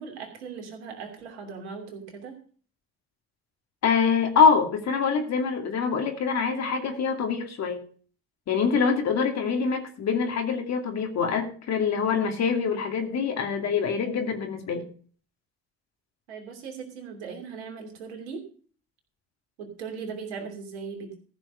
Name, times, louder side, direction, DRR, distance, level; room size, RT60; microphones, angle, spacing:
voice 1, 0.0-2.4 16.3-18.4 19.6-21.2, right 5 dB, 85° right, 3 dB, 2.9 m, -38 dB
voice 2, 3.8-7.8 8.5-14.9, left 6 dB, 55° left, 4 dB, 2.6 m, -25 dB
14.5 x 6.1 x 6.4 m, 0.43 s
hypercardioid pair, 60°, 32 cm